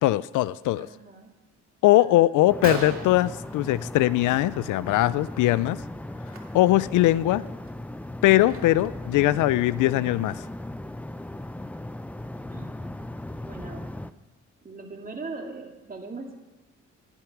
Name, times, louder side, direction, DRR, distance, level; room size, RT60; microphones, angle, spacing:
voice 1, 0.0-0.9 1.8-5.8 6.5-7.4 8.2-10.4, left 16 dB, 80° left, 19 dB, 0.5 m, -21 dB
voice 2, 0.8-1.3 2.0-2.4 12.5-12.8 13.5-13.9 14.6-16.4, right 3 dB, 30° right, 2 dB, 2.3 m, -40 dB
Gunshot gunfire, 1.9-2.0 2.4-2.5 2.6-4.2 4.6-4.9 5.2-5.4 6.2-6.4 6.9-7.0 7.5-9.0, right 5 dB, 45° right, 2.5 m, -37 dB
sound 1, 2.5-14.1, left 1 dB, 5° left, 0.5 m, -38 dB
14.5 x 11.0 x 5.9 m, 1.1 s
cardioid pair, 90°, 30 cm